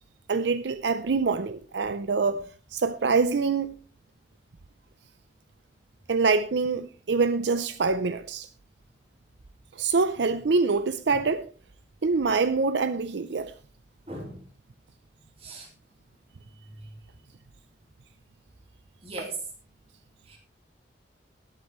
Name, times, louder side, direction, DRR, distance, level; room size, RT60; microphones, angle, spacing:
voice 1, 0.3-2.4 2.7-3.7 6.1-8.5 9.8-11.5 12.0-13.5, right 4 dB, 75° right, 0.5 m, -25 dB
voice 2, 14.1-14.4 15.4-15.7 19.0-19.4 20.3-20.4, right 2 dB, 35° right, 3.8 m, -38 dB
19.5 x 8.1 x 3.1 m
head